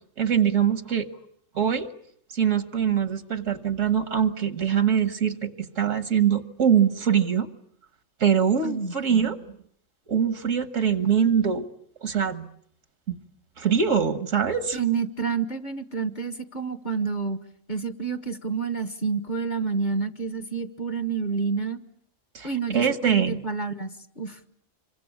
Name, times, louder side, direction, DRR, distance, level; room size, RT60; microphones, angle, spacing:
voice 1, 0.2-1.1 1.6-1.9 2.3-7.5 8.2-9.4 10.1-11.7 12.0-12.5 13.1-13.2 13.6-14.8 22.3-23.4, right 8 dB, 75° right, 11 dB, 1.7 m, -23 dB
voice 2, 8.6-9.2 14.7-17.4 17.7-21.8 22.4-24.4, right 5 dB, 35° left, 10 dB, 1.5 m, -29 dB
26.5 x 24.0 x 8.4 m, 0.66 s
omnidirectional pair, 1.3 m